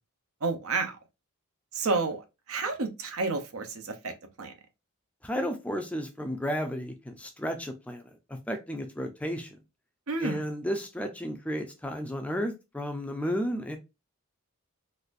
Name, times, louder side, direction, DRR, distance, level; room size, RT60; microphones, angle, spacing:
voice 1, 0.4-1.0 1.7-2.2 2.5-4.1 4.4-4.5 10.1-10.4, right 3 dB, 75° right, 0.7 m, -30 dB
voice 2, 5.2-9.6 10.2-13.8, equal, 5° left, 0.4 m, -33 dB
4.0 x 2.5 x 2.5 m
head